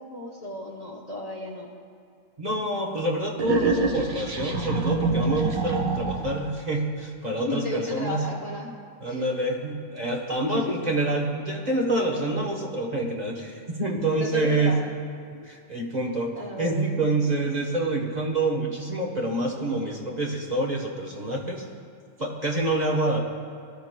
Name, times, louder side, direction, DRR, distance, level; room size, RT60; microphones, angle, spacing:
voice 1, 0.0-1.7 7.4-8.7 9.1-9.3 10.4-10.8 14.2-14.8 15.3-15.5 16.3-16.9, left 2 dB, 35° left, -1 dB, 0.8 m, -33 dB
voice 2, 2.4-8.2 9.0-14.7 15.4-16.3 16.6-21.6 22.2-23.2, right 2 dB, 35° right, -1 dB, 1.0 m, -27 dB
sound 1, 3.4-6.5, right 3 dB, 85° right, 1.5 m, -26 dB
19.0 x 12.5 x 2.2 m, 2.2 s
omnidirectional pair, 1.4 m